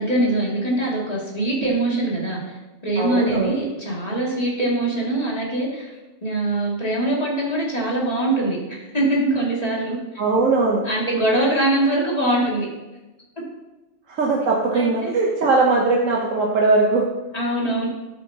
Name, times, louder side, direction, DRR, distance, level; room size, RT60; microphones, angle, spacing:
voice 1, 0.0-2.5 2.8-5.9 6.2-9.9 10.8-12.7 14.7-15.1 17.3-17.9, right 1 dB, 30° left, -4 dB, 2.5 m, -23 dB
voice 2, 3.0-3.6 10.2-10.8 14.1-17.1, right 3 dB, 70° right, -1 dB, 1.3 m, -20 dB
10.5 x 8.4 x 2.8 m, 1.1 s
omnidirectional pair, 1.4 m